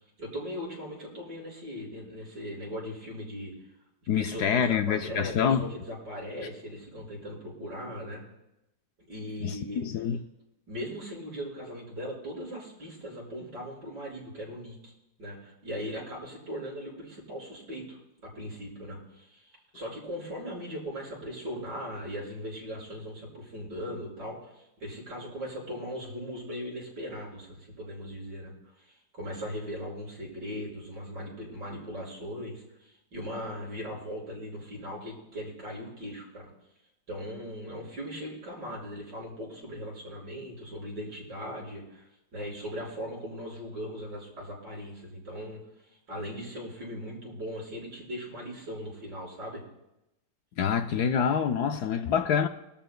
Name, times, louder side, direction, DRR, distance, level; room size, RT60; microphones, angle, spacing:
voice 1, 0.2-3.5 4.1-8.2 9.1-9.8 10.7-14.9 15.2-19.4 19.7-36.5 37.1-42.1 42.3-45.6 46.1-49.6, equal, 70° right, 6.2 m, -39 dB
voice 2, 4.1-5.7 9.4-10.2 50.6-52.5, left 7 dB, 70° left, 1.1 m, -26 dB
23.0 x 13.0 x 2.2 m
omnidirectional pair, 2.0 m